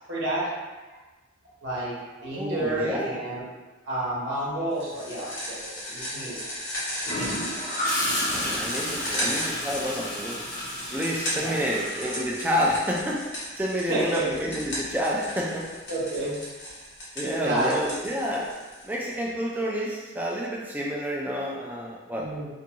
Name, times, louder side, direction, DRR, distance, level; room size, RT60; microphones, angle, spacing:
voice 1, 0.1-0.6 0.9-1.0 1.4-3.4 3.8-6.4 11.3-11.5 13.9-14.3 15.9-16.4 17.4-17.9 22.2-22.5, right 2 dB, 65° right, -7 dB, 0.8 m, -30 dB
voice 2, 2.3-3.2 8.1-10.5 10.9-15.7 17.2-18.5 18.8-22.3, equal, 10° right, -3 dB, 0.3 m, -29 dB
sound 1, 4.8-19.1, equal, 65° left, 1.0 m, -35 dB
Gurgling / Toilet flush, 7.0-12.8 14.8-15.0, equal, 40° left, 0.6 m, -32 dB
2.5 x 2.3 x 2.8 m, 1.2 s
head